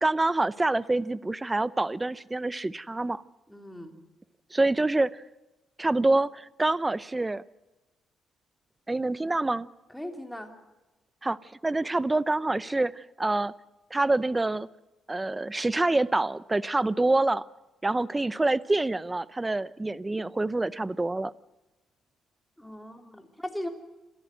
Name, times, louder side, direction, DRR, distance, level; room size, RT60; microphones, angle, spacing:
voice 1, 0.0-3.2 4.5-5.2 5.8-7.4 8.9-9.7 11.2-11.4 11.6-13.5 13.9-14.7 15.1-17.4 17.8-21.3, right 2 dB, 15° right, 18 dB, 0.7 m, -26 dB
voice 2, 3.5-3.9 9.9-10.5 22.6-23.7, left 1 dB, 5° left, 4 dB, 3.2 m, -38 dB
26.5 x 14.0 x 7.8 m, 1.1 s
cardioid pair, 90°, 0 cm